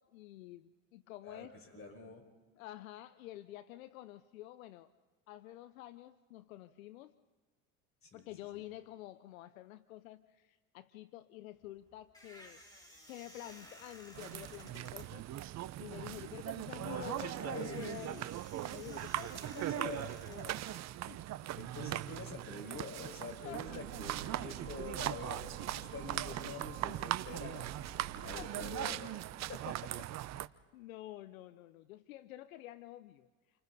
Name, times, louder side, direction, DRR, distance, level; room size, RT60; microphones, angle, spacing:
voice 1, 0.0-1.6 2.6-4.9 5.3-7.1 8.1-12.6 13.1-15.3 15.8-18.3 18.6-20.8 21.1-21.2 23.4-23.8 26.9-27.0 28.3-29.0 30.7-33.3, left 15 dB, 85° left, 14 dB, 0.8 m, -49 dB
voice 2, 1.2-2.2 8.0-8.3 16.8-17.9 19.6-20.1 21.6-27.6 28.2-29.1 29.5-29.9, left 4 dB, 35° left, 3 dB, 5.6 m, -46 dB
sound 1, 11.5-21.5, equal, 10° left, 4.5 m, -57 dB
sound 2, 14.1-30.5, right 13 dB, 40° right, 0.7 m, -40 dB
sound 3, 23.6-28.8, right 9 dB, 80° right, 2.1 m, -49 dB
29.5 x 25.0 x 4.1 m, 1.3 s
hypercardioid pair, 85°, 40 cm